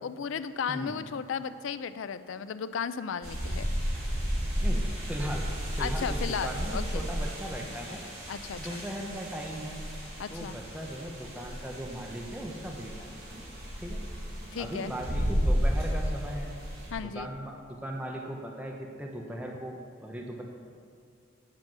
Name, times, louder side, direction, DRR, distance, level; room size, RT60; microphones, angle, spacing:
voice 1, 0.0-3.7 5.8-7.0 8.3-8.6 10.2-10.6 14.5-14.9 16.9-17.3, left 6 dB, 85° left, 13 dB, 0.4 m, -35 dB
sound 1, 3.2-16.9, equal, 50° right, 2.4 m, -33 dB
voice 2, 4.6-5.5 5.7-8.0 8.5-9.8 10.3-13.1 13.8-14.0 14.6-16.5 17.0-20.4, equal, 5° right, 0 dB, 0.7 m, -38 dB
7.6 x 7.4 x 6.1 m, 2.3 s
head